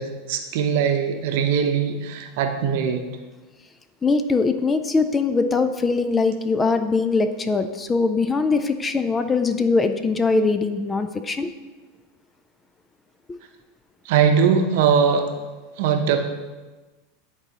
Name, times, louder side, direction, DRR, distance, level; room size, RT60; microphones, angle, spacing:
voice 1, 0.0-3.0 14.0-15.3 15.8-16.2, right 7 dB, 70° right, 5 dB, 0.8 m, -21 dB
voice 2, 4.0-11.5 13.3-13.4, left 4 dB, 20° left, 9 dB, 0.4 m, -22 dB
10.5 x 4.1 x 2.9 m, 1.2 s
supercardioid pair, 120°, 0 cm